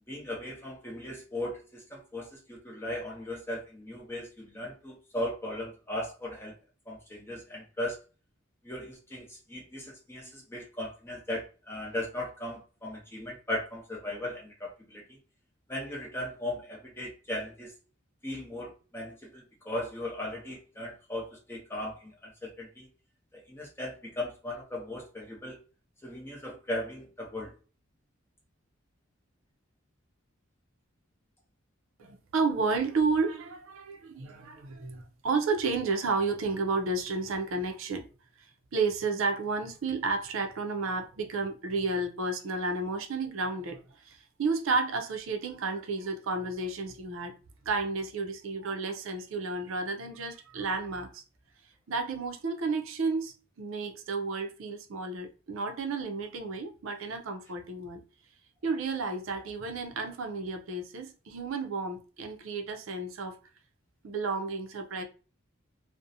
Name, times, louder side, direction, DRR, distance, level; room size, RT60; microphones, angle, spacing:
voice 1, 0.1-6.5 6.9-8.0 8.6-15.2 15.7-17.7 18.2-22.9 23.3-25.6 26.0-27.5, left 1 dB, 10° left, 0.7 m, -37 dB
voice 2, 32.0-38.1 38.7-43.8 44.0-47.3 47.7-51.2 51.9-58.0 58.6-63.4 64.0-65.0, right 3 dB, 70° right, 0.5 m, -32 dB
2.4 x 2.0 x 2.7 m
head